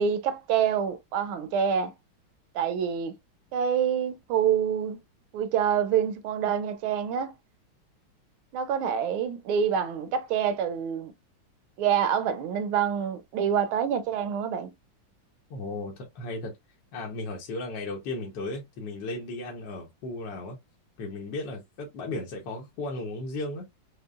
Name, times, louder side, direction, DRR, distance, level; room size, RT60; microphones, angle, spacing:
voice 1, 0.0-1.9 2.5-3.1 3.5-5.0 5.3-7.3 8.5-11.1 11.8-14.7, right 8 dB, 90° right, 1.5 m, -26 dB
voice 2, 15.5-16.5 16.9-20.6 21.0-23.7, left 2 dB, 70° left, 1.4 m, -35 dB
6.5 x 2.2 x 2.3 m
omnidirectional pair, 2.2 m